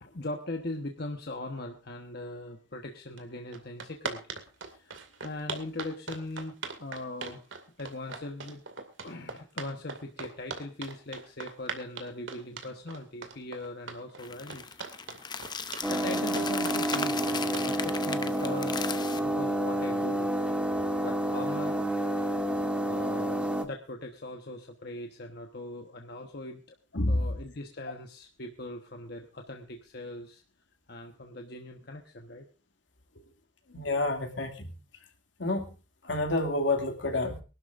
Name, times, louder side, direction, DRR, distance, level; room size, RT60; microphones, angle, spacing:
voice 1, 0.0-4.2 4.6-7.4 7.8-8.6 9.0-14.8 15.9-20.3 21.0-21.8 22.8-26.6 27.1-30.4 30.9-32.5 33.1-33.3, left 2 dB, 55° left, 3 dB, 1.3 m, -40 dB
sound 1, 3.2-3.3 3.5-19.1, right 4 dB, 85° right, 2.3 m, -40 dB
sound 2, 14.2-19.2, left 5 dB, 25° left, 0.7 m, -37 dB
sound 3, 15.8-23.7, right 1 dB, 5° right, 1.5 m, -29 dB
voice 2, 26.9-27.3 33.7-34.7 35.4-35.7 36.0-37.4, left 2 dB, 75° left, 5 dB, 2.5 m, -28 dB
23.5 x 12.0 x 2.6 m, 0.33 s
head